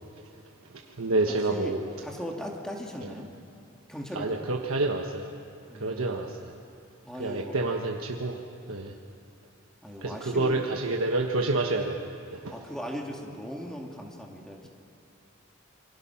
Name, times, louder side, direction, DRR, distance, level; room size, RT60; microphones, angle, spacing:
voice 1, 1.0-1.8 3.0-3.1 4.1-5.3 5.8-6.5 7.2-8.4 8.7-8.9 10.0-12.4, right 2 dB, 80° right, 1 dB, 1.2 m, -28 dB
voice 2, 2.0-3.3 3.9-4.4 5.7-6.0 7.0-7.6 9.8-10.6 12.5-14.7, equal, 5° left, 0 dB, 2.2 m, -38 dB
27.0 x 24.0 x 5.8 m, 2.4 s
head